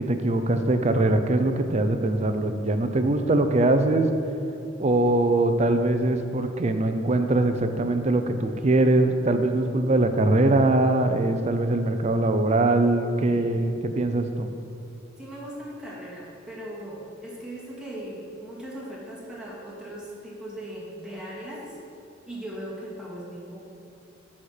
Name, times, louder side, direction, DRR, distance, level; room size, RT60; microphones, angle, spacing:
voice 1, 0.0-4.1 4.8-14.5, right 2 dB, 35° right, 7 dB, 0.5 m, -22 dB
voice 2, 13.2-13.6 15.2-21.7 22.3-23.6, right 1 dB, 5° right, -7 dB, 2.0 m, -38 dB
9.6 x 4.3 x 6.5 m, 2.6 s
head